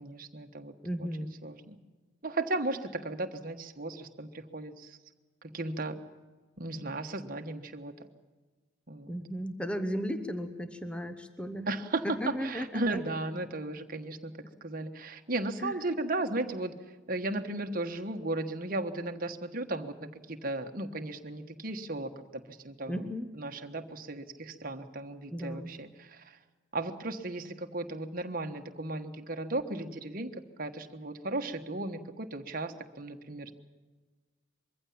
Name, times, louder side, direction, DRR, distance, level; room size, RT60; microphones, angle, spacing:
voice 1, 0.0-0.7 1.0-1.1 1.4-1.8 2.2-5.0 5.5-6.0 6.6-7.9 8.9-9.2 11.7-14.3 14.6-26.4 26.7-30.3 30.6-33.5, right 2 dB, 45° right, 6 dB, 1.4 m, -35 dB
voice 2, 0.8-1.3 9.1-11.7 12.2-13.0 15.6-15.8 22.9-23.3 25.3-25.7, equal, 5° left, 8 dB, 1.0 m, -35 dB
23.0 x 15.5 x 8.7 m, 1.4 s
head